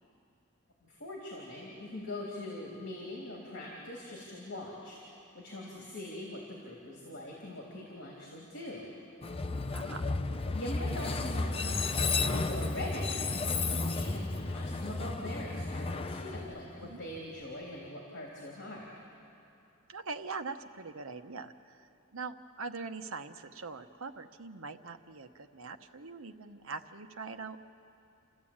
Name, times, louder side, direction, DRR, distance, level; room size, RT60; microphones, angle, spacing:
voice 1, 0.8-5.0 5.3-8.9 10.5-14.3 14.5-18.9, left 1 dB, 60° left, -3 dB, 3.5 m, -42 dB
Train, 9.2-17.2, left 3 dB, 30° left, 0.7 m, -33 dB
voice 2, 9.7-10.1 16.8-17.0 19.9-27.6, right 4 dB, 90° right, 7 dB, 1.0 m, -42 dB
29.5 x 13.5 x 8.8 m, 2.7 s
head